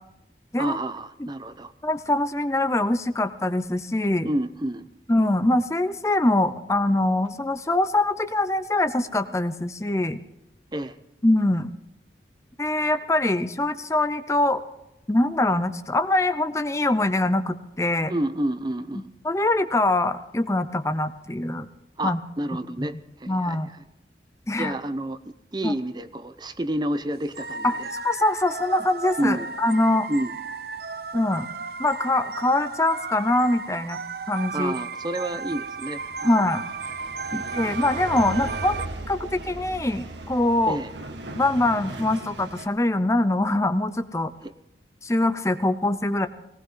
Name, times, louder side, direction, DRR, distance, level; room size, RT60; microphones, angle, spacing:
voice 1, 0.6-1.7 4.2-4.9 10.7-11.0 18.1-19.1 22.0-22.9 23.2-23.6 24.5-25.2 25.5-27.9 29.2-29.5 30.1-30.3 34.5-36.4 37.3-37.5 40.7-40.9 44.4-44.5, right 1 dB, 25° right, 11 dB, 0.7 m, -29 dB
voice 2, 1.8-4.3 5.1-10.2 11.2-11.7 12.6-14.6 15.1-18.1 19.2-21.7 22.0-22.2 22.8-22.9 23.3-23.8 24.5-24.8 25.6-25.7 27.6-30.1 31.1-31.5 31.8-34.0 34.3-34.7 36.2-36.6 37.3-40.8 41.3-44.3 45.0-46.3, left 2 dB, 15° left, 11 dB, 0.6 m, -23 dB
sound 1, 27.3-38.9, right 4 dB, 60° right, 0.9 m, -34 dB
sound 2, 35.2-42.7, right 2 dB, 80° right, 1.8 m, -37 dB
19.0 x 19.0 x 3.8 m, 0.88 s
head